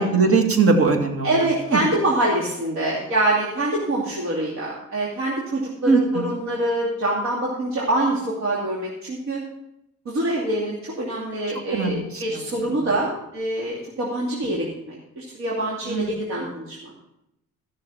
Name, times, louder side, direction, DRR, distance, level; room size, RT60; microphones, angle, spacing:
voice 1, 0.0-1.3 1.7-1.8 5.9-6.3 11.7-12.4 15.9-16.1, right 4 dB, 50° right, 4 dB, 2.1 m, -20 dB
voice 2, 1.2-9.4 10.0-16.9, right 1 dB, 65° right, -5 dB, 2.7 m, -25 dB
14.0 x 6.5 x 5.8 m, 0.81 s
cardioid pair, 90°, 30 cm